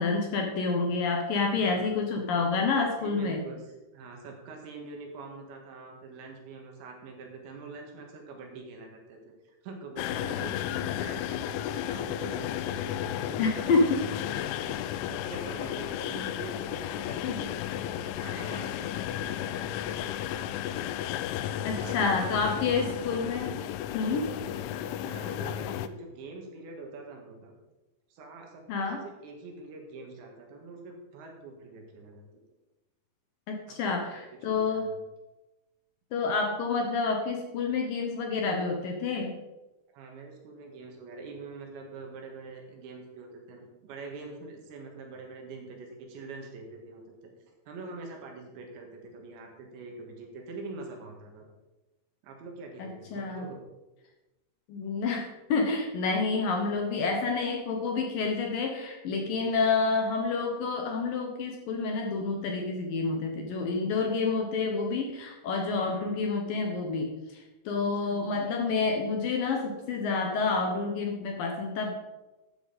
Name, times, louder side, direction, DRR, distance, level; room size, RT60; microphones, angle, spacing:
voice 1, 0.0-3.4 13.4-14.0 17.2-17.4 18.3-18.4 21.6-23.5 23.9-24.3 28.7-29.0 33.5-34.9 36.1-39.3 52.8-53.4 54.7-71.9, left 4 dB, 70° left, 2 dB, 2.2 m, -28 dB
voice 2, 1.6-2.1 3.0-3.7 3.9-13.8 14.4-20.4 21.8-23.0 25.0-27.5 28.1-32.3 33.7-35.0 39.9-47.3 47.7-51.4 52.2-53.6 59.4-59.7 65.9-66.1 68.0-68.2, right 3 dB, 75° right, 2 dB, 4.0 m, -45 dB
sound 1, 10.0-25.9, left 11 dB, 90° left, 3.0 m, -33 dB
12.5 x 9.9 x 4.1 m, 1.0 s
omnidirectional pair, 5.3 m